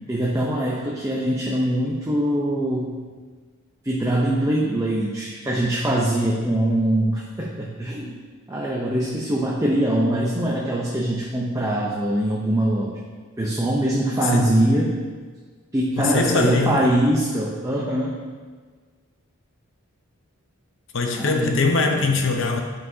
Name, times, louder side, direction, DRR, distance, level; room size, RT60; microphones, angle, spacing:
voice 1, 0.1-2.9 3.8-8.2 8.5-13.0 13.4-14.9 15.7-18.1 21.2-21.6 22.0-22.2, right 1 dB, 15° right, -4 dB, 0.6 m, -23 dB
voice 2, 14.2-14.6 16.0-16.9 20.9-22.6, left 3 dB, 60° left, 4 dB, 0.7 m, -22 dB
8.3 x 5.5 x 2.7 m, 1.5 s
head